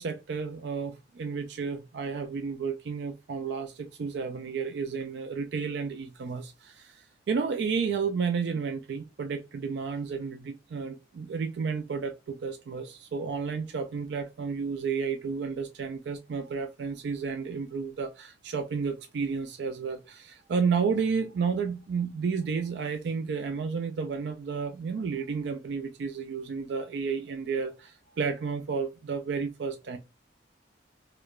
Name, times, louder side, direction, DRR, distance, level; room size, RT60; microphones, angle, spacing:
voice 1, 0.0-30.0, right 5 dB, 65° right, 0.3 m, -32 dB
4.7 x 2.1 x 2.3 m
head